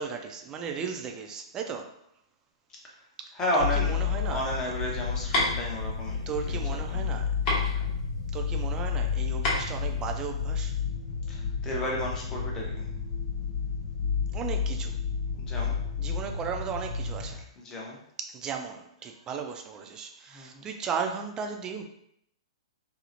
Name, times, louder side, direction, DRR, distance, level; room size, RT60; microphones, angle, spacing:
voice 1, 0.0-2.0 3.2-4.4 6.3-7.3 8.3-10.8 14.3-15.0 16.0-17.5 18.2-21.8, right 6 dB, 20° right, 4 dB, 0.3 m, -36 dB
voice 2, 3.3-4.0 4.3-7.2 11.3-12.9 15.3-15.8 17.6-18.0 20.3-20.7, left 1 dB, 20° left, -2 dB, 0.6 m, -33 dB
sound 1, 3.6-17.3, left 6 dB, 65° left, 0.6 m, -31 dB
sound 2, 4.2-10.8, left 1 dB, 35° left, 1.0 m, -32 dB
2.8 x 2.0 x 2.6 m, 0.71 s
hypercardioid pair, 120°, 3 cm